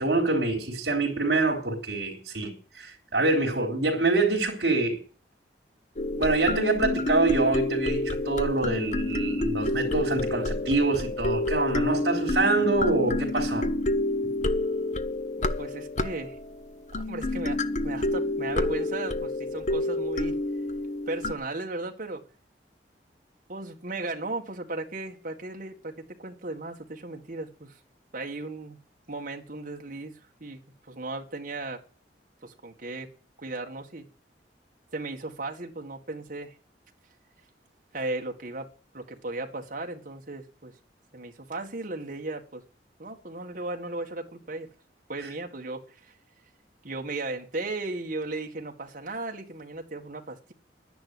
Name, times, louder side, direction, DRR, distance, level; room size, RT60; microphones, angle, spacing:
voice 1, 0.0-5.0 6.2-13.7 45.2-45.3, right 2 dB, 65° right, 3.5 m, -25 dB
sound 1, 6.0-21.3, left 2 dB, 45° left, 0.9 m, -29 dB
voice 2, 15.4-16.4 17.0-20.4 21.1-22.2 23.5-27.8 28.1-28.8 29.1-30.1 30.4-30.6 30.9-31.8 32.4-33.1 33.4-34.1 34.9-36.6 37.9-38.7 38.9-40.7 41.1-42.6 43.0-44.7 45.1-46.1 46.8-50.5, right 2 dB, 50° right, 1.9 m, -36 dB
11.0 x 10.5 x 7.9 m
head